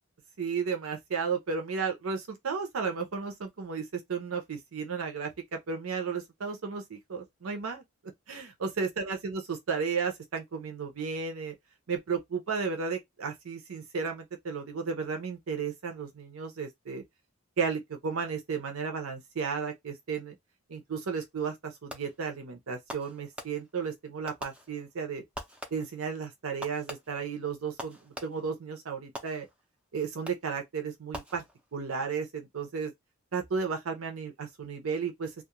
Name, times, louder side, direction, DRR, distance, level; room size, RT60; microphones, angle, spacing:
voice 1, 0.4-7.8 8.3-11.5 11.9-17.0 17.6-20.3 20.7-25.2 25.7-29.5 29.9-31.4 31.7-32.9 33.3-35.4, right 5 dB, 75° right, 0.6 m, -34 dB
Fireworks, 21.9-22.3 22.9-23.9 24.3-25.0 25.3-26.1 26.6-28.6 29.2-29.8 30.3-30.7 31.1-31.9, equal, 5° right, 0.4 m, -44 dB
2.3 x 2.1 x 2.9 m
head